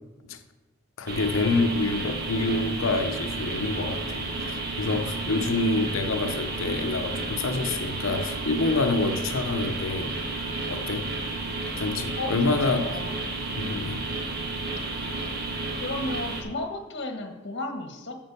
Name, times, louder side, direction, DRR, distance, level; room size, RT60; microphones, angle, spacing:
voice 1, 1.0-10.2 10.7-11.1 11.8-13.0 13.6-14.0, left 3 dB, 90° left, 0.7 m, -27 dB
sound 1, 1.1-16.4, right 2 dB, 50° right, 1.3 m, -32 dB
voice 2, 12.2-13.1 15.7-18.2, left 2 dB, 55° left, 1.3 m, -34 dB
8.8 x 6.0 x 6.7 m
head